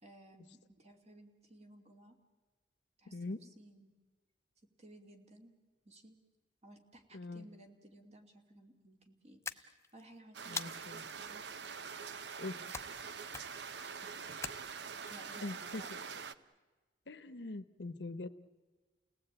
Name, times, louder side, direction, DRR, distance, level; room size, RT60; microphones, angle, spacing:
voice 1, 0.0-2.2 3.0-4.0 4.8-5.5 5.8-6.2 6.6-11.4 12.6-12.8 14.0-14.4 15.1-16.4, right 1 dB, 40° right, 4 dB, 2.6 m, -58 dB
voice 2, 7.1-7.5 10.5-11.0 12.4-12.6 15.4-15.8 17.1-18.3, left 2 dB, 70° left, 14 dB, 0.9 m, -42 dB
sound 1, 9.4-10.0 10.6-11.1 12.7-13.0 13.3-13.7 14.4-15.1, left 4 dB, 15° left, 0.7 m, -43 dB
sound 2, 10.3-16.3, right 6 dB, 70° right, 0.9 m, -45 dB
29.5 x 18.0 x 8.9 m, 1.3 s
head